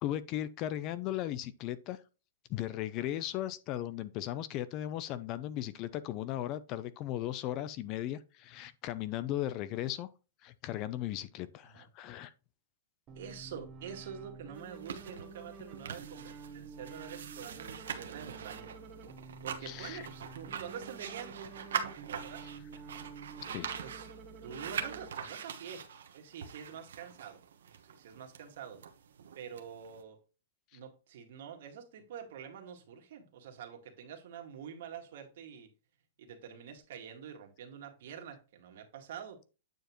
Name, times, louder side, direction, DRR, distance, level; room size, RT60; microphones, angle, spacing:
voice 1, 0.0-2.0 2.5-10.1 10.4-12.3 19.7-20.0 23.5-23.7, left 13 dB, 35° left, 0.5 m, -37 dB
sound 1, 13.1-25.1, right 4 dB, 25° right, 1.1 m, -49 dB
voice 2, 13.1-18.7 19.4-21.5 22.1-22.5 23.8-24.1 24.4-25.8 26.1-27.4 27.8-28.8 29.4-30.2 30.7-35.7 36.2-39.4, right 8 dB, 60° right, 1.9 m, -46 dB
sound 2, 14.6-30.0, right 7 dB, 85° right, 1.1 m, -43 dB
9.1 x 4.9 x 3.0 m
hypercardioid pair, 150°, 0 cm